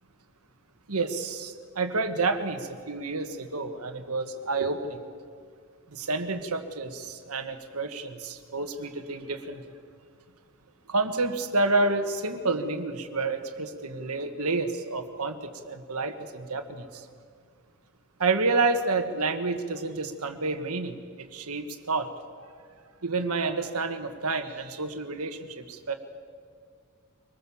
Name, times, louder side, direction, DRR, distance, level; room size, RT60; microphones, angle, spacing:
voice 1, 0.9-5.0 5.9-9.7 10.9-17.1 18.2-22.1 22.4-22.5 23.0-25.9, right 3 dB, 85° right, 7 dB, 1.6 m, -29 dB
24.0 x 20.0 x 7.2 m, 2.1 s
head